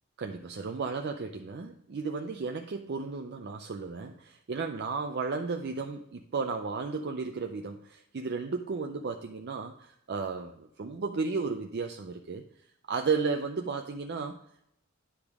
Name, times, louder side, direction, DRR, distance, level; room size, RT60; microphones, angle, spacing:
voice 1, 0.2-12.4 12.9-14.4, right 4 dB, 55° right, 5 dB, 0.5 m, -34 dB
9.9 x 5.0 x 3.5 m, 0.78 s
head